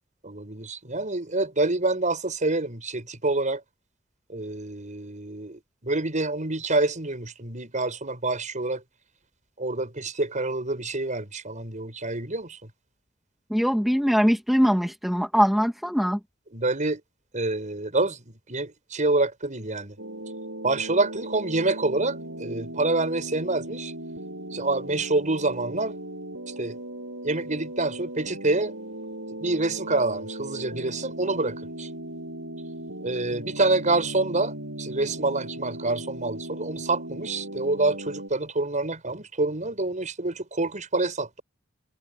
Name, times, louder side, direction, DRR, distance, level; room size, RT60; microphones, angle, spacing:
voice 1, 0.2-3.6 4.3-8.8 9.6-12.6 16.5-17.0 17.3-18.2 18.5-20.0 20.6-23.9 24.5-25.9 26.6-26.8 27.2-28.7 29.4-31.9 33.0-41.4, right 2 dB, 35° right, 6.1 m, -27 dB
voice 2, 13.5-16.2, equal, ahead, 2.2 m, -22 dB
sound 1, 20.0-38.3, right 1 dB, 65° right, 7.7 m, -37 dB
head